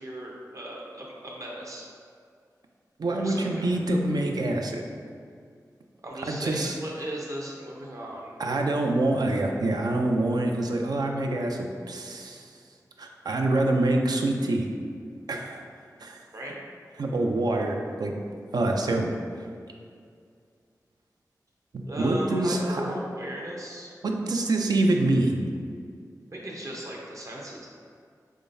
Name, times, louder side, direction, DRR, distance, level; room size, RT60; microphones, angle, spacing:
voice 1, 0.0-1.9 3.1-3.7 6.0-8.3 16.3-16.5 21.8-23.9 26.3-27.7, right 1 dB, 50° right, -3 dB, 0.8 m, -37 dB
voice 2, 3.0-4.8 6.2-6.8 8.4-12.5 13.0-14.7 15.3-15.6 16.0-16.2 17.0-18.1 18.5-19.2 21.7-23.0 24.0-25.4, right 2 dB, 70° right, 2 dB, 0.4 m, -26 dB
3.6 x 3.4 x 2.6 m, 2.2 s
cardioid pair, 50°, 7 cm